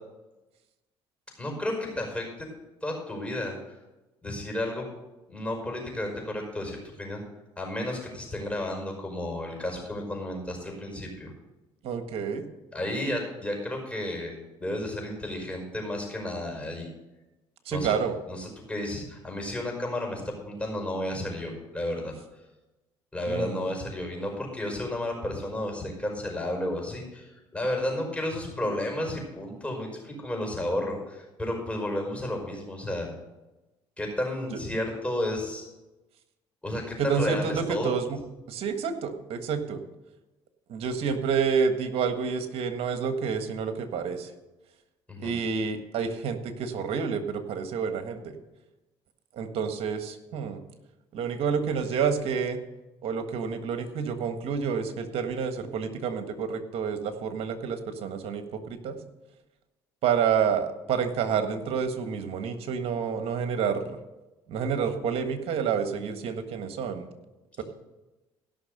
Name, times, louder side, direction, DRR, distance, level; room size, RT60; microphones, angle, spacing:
voice 1, 1.4-2.5 2.8-3.8 4.2-4.9 5.3-7.2 7.6-11.3 12.7-16.9 17.7-17.9 18.3-22.1 23.1-33.1 34.0-35.6 36.6-37.9 45.1-45.3, left 1 dB, 10° left, 1 dB, 5.3 m, -32 dB
voice 2, 11.8-12.5 17.6-18.2 23.3-23.7 34.5-34.6 37.0-38.2 38.5-39.8 40.7-44.3 45.2-48.4 49.3-50.6 51.1-52.6 53.0-59.0 60.0-64.0 64.5-67.1, right 6 dB, 65° right, 8 dB, 1.5 m, -29 dB
16.0 x 6.1 x 6.6 m, 1.1 s
supercardioid pair, 75°, 11 cm